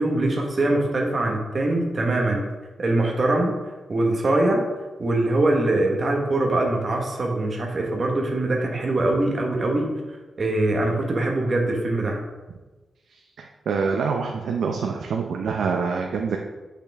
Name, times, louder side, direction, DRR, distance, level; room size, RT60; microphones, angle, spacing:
voice 1, 0.0-2.4 2.8-3.5 3.9-4.7 5.0-9.9 10.4-12.2, right 2 dB, 35° right, 0 dB, 1.3 m, -22 dB
voice 2, 13.4-16.4, right 5 dB, 85° right, 1 dB, 0.7 m, -25 dB
8.4 x 5.8 x 3.5 m, 1.2 s
wide cardioid pair, 160°, 0 cm